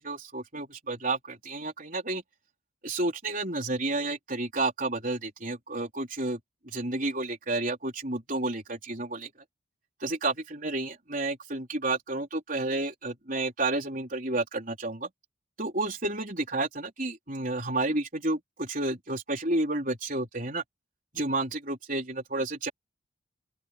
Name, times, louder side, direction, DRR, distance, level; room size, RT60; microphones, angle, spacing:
voice 1, 0.0-2.2 2.8-6.4 6.7-9.3 10.0-15.1 15.6-20.6 21.1-22.7, right 2 dB, 40° right, 4.3 m, -31 dB
open air
head